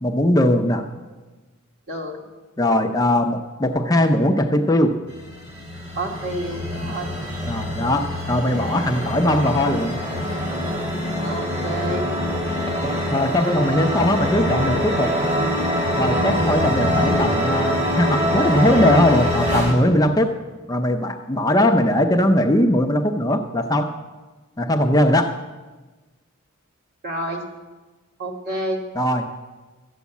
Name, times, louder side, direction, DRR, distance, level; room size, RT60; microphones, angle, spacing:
voice 1, 0.0-0.9 2.6-5.0 7.5-9.9 13.1-15.1 16.0-20.4 20.7-23.9 24.6-25.4 28.9-29.3, left 1 dB, 15° left, 4 dB, 0.6 m, -20 dB
voice 2, 1.9-2.2 6.0-7.1 11.2-12.0 27.0-27.4 28.2-28.8, right 1 dB, 50° right, 0 dB, 2.4 m, -29 dB
sound 1, 5.1-19.7, equal, 35° right, 3.2 m, -24 dB
13.5 x 8.2 x 8.3 m, 1.3 s
head